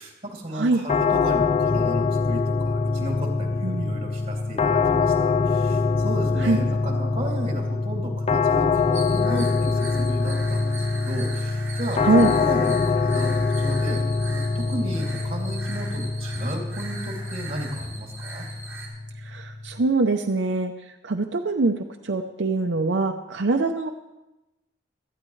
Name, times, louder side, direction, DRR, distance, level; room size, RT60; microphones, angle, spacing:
voice 1, 0.0-13.3 13.6-14.0 14.5-18.5, right 1 dB, 35° right, 1 dB, 2.7 m, -33 dB
voice 2, 0.5-0.8 3.6-4.0 6.4-6.6 12.0-12.3 19.2-20.7 21.0-23.9, right 3 dB, 75° right, 4 dB, 0.7 m, -23 dB
sound 1, 0.9-19.8, left 4 dB, 35° left, 0.4 m, -24 dB
sound 2, 8.7-18.9, right 3 dB, 15° right, 3.0 m, -40 dB
17.5 x 13.0 x 3.2 m, 0.98 s
head